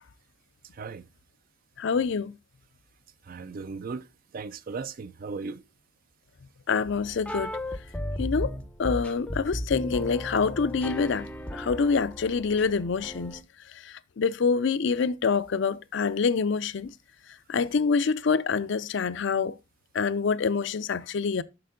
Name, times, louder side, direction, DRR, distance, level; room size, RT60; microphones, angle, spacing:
voice 1, 0.7-1.1 3.3-4.1 4.3-5.6, right 4 dB, 45° right, 0.4 m, -37 dB
voice 2, 1.8-2.3 6.7-7.6 8.2-8.5 8.8-11.3 11.5-13.4 13.8-16.9 17.5-19.6 19.9-21.4, left 5 dB, 65° left, 0.5 m, -26 dB
sound 1, 6.9-13.4, equal, 5° left, 0.6 m, -35 dB
6.7 x 6.0 x 3.7 m
head